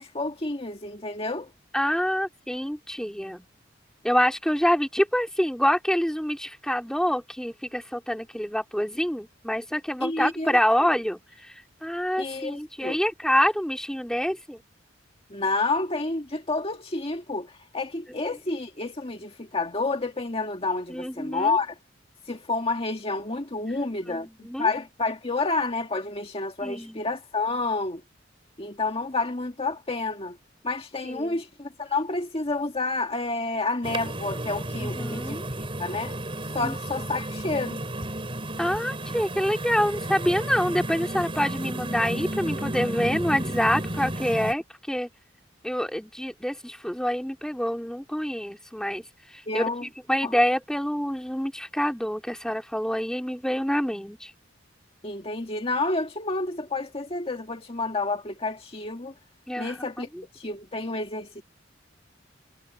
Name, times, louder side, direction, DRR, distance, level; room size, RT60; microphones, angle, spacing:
voice 1, 0.0-1.5 10.0-10.6 12.2-13.0 15.3-21.8 22.3-28.0 28.6-30.4 30.6-35.4 35.8-36.1 36.5-37.8 49.5-49.9 50.2-50.3 55.0-59.1 59.6-60.1 60.3-61.4, left 3 dB, 30° left, 1.9 m, -29 dB
voice 2, 1.7-3.5 4.0-14.6 20.9-21.6 24.1-24.7 26.6-27.0 31.0-31.4 34.8-35.4 36.6-36.7 38.6-45.1 45.6-49.0 49.3-54.3 59.5-60.2, equal, 5° left, 2.9 m, -27 dB
sound 1, 33.8-44.5, right 1 dB, 30° right, 5.2 m, -32 dB
head